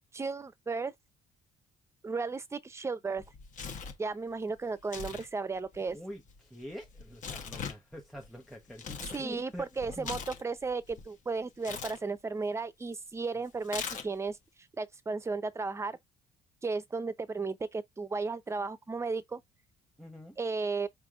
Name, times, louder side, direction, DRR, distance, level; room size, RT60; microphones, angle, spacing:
voice 1, 0.1-0.9 2.0-3.2 4.0-6.0 9.1-14.4 14.8-16.0 16.6-19.4 20.4-20.9, right 4 dB, 15° right, 0.6 m, -34 dB
Tearing, 3.2-4.0 4.8-5.3 5.5-9.2 9.6-11.1 11.6-12.0 13.6-14.3, left 6 dB, 50° left, 1.1 m, -41 dB
voice 2, 5.9-9.7 10.0-10.1 20.0-20.4, equal, ahead, 1.0 m, -45 dB
5.0 x 3.4 x 2.4 m
cardioid pair, 110°, 17 cm